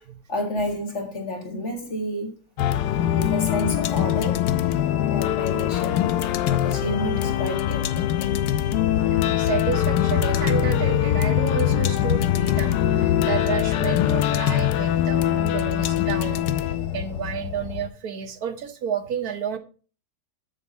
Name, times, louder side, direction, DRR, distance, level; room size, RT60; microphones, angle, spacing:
voice 1, 0.3-2.3 2.9-4.4 5.0-6.1 6.5-8.5, left 1 dB, 45° left, 1 dB, 2.2 m, -30 dB
sound 1, 2.6-17.9, left 11 dB, 85° left, 1.2 m, -23 dB
voice 2, 9.0-19.6, right 7 dB, 65° right, 8 dB, 1.3 m, -31 dB
7.6 x 7.2 x 4.1 m, 0.37 s
omnidirectional pair, 1.7 m